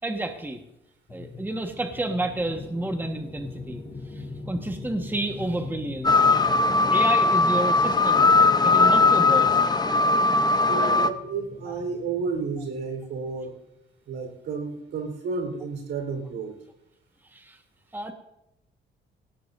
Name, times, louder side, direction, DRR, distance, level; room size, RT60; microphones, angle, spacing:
voice 1, 0.0-0.6 1.1-3.8 4.1-6.5 6.9-8.3 8.6-9.7 17.3-17.6 17.9-18.1, right 1 dB, 10° right, 4 dB, 1.5 m, -30 dB
sound 1, 1.1-13.3, left 3 dB, 40° left, 2.8 m, -42 dB
sound 2, 6.0-11.1, left 3 dB, 20° left, 0.8 m, -19 dB
voice 2, 10.7-13.6 14.1-16.6, right 4 dB, 75° right, 4 dB, 4.2 m, -31 dB
18.5 x 17.0 x 2.7 m, 0.84 s
cardioid pair, 90°, 20 cm